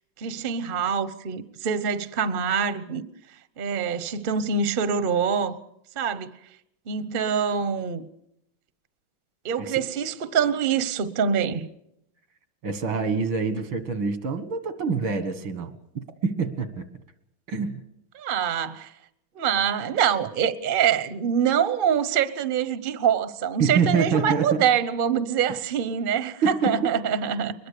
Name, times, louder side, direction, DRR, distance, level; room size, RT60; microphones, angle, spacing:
voice 1, 0.2-3.1 3.6-5.6 6.0-6.3 6.9-8.1 9.4-11.7 18.1-18.9 19.4-27.5, right 7 dB, 40° right, 0.8 m, -25 dB
voice 2, 12.6-16.9 17.5-17.8 23.6-24.7 26.4-26.9, right 5 dB, 85° right, 2.4 m, -26 dB
22.5 x 21.0 x 6.7 m
omnidirectional pair, 2.2 m